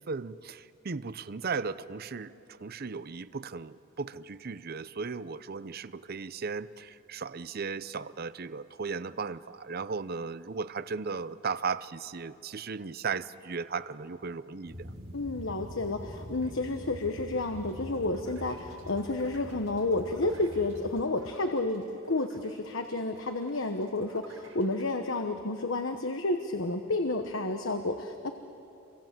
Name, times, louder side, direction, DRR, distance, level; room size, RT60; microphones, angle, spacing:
voice 1, 0.0-14.9, right 5 dB, 50° right, 16 dB, 0.6 m, -36 dB
sound 1, 14.7-21.0, equal, 30° right, 2.3 m, -45 dB
voice 2, 15.1-28.3, left 2 dB, 75° left, 6 dB, 1.2 m, -31 dB
sound 2, 15.8-24.9, right 3 dB, 85° right, 7.1 m, -57 dB
29.5 x 24.0 x 7.6 m, 2.8 s
head